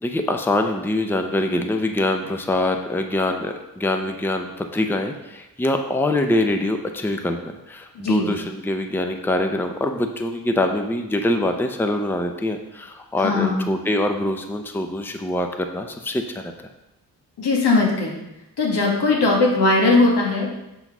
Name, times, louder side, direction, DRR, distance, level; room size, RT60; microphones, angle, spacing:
voice 1, 0.0-7.4 7.7-16.7, left 1 dB, 5° left, 5 dB, 0.6 m, -24 dB
voice 2, 8.0-8.3 13.2-13.7 17.4-18.2 18.6-20.5, left 3 dB, 90° left, -1 dB, 2.0 m, -19 dB
7.9 x 4.0 x 6.0 m, 0.94 s
wide cardioid pair, 120°, 39 cm